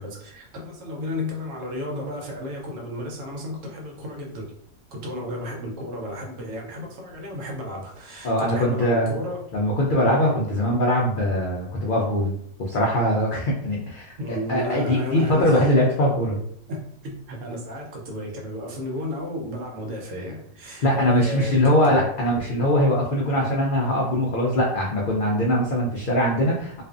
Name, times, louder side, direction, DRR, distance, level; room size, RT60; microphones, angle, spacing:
voice 1, 0.0-4.4 4.9-9.4 10.3-10.5 14.2-15.7 16.7-22.1, left 1 dB, 70° right, 0 dB, 1.0 m, -33 dB
voice 2, 8.2-9.1 9.5-12.3 12.6-14.1 14.5-16.4 20.8-26.8, equal, 75° left, -3 dB, 0.4 m, -21 dB
2.4 x 2.4 x 2.4 m, 0.67 s
omnidirectional pair, 1.5 m